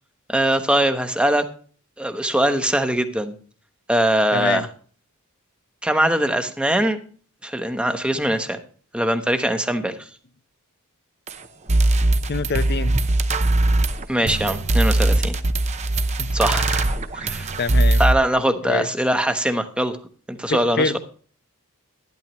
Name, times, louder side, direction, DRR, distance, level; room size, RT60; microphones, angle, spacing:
voice 1, 0.3-1.5 2.0-3.3 3.9-4.7 5.8-7.0 7.4-8.6 8.9-10.1 14.1-15.3 16.3-17.5 18.0-20.0 20.3-21.0, right 1 dB, 5° right, 8 dB, 1.0 m, -22 dB
voice 2, 4.3-4.7 12.1-13.0 16.2-16.3 17.6-18.0 18.6-18.9 20.5-21.0, left 4 dB, 50° left, 13 dB, 0.7 m, -25 dB
sound 1, 11.3-11.4 11.7-18.1, right 2 dB, 30° right, 0.8 m, -20 dB
12.5 x 12.0 x 3.0 m, 0.43 s
head